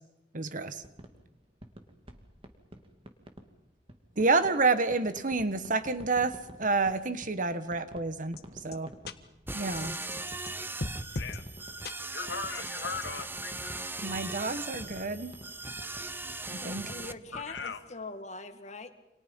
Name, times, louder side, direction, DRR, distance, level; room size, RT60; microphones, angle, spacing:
voice 1, 0.3-0.8 4.2-6.3 6.6-8.4 8.6-8.9 9.5-10.0 14.0-15.3 16.5-16.9, right 3 dB, 50° right, 11 dB, 1.6 m, -29 dB
sound 1, 0.7-3.5 3.9-4.6 4.9-7.4 7.7-17.7, right 1 dB, 30° right, 2.6 m, -49 dB
sound 2, 8.4-8.5 8.7-8.8 9.1-9.2 9.8-10.5 10.8-11.4 11.8-11.9 12.5-13.1, left 2 dB, 60° left, 1.5 m, -37 dB
sound 3, 9.5-17.1, right 3 dB, 10° right, 0.8 m, -39 dB
voice 2, 12.1-13.9 17.3-17.8, left 5 dB, 80° left, 8 dB, 2.0 m, -38 dB
voice 3, 16.6-18.9, left 3 dB, 40° left, 8 dB, 2.0 m, -43 dB
29.0 x 27.5 x 5.6 m, 0.96 s
head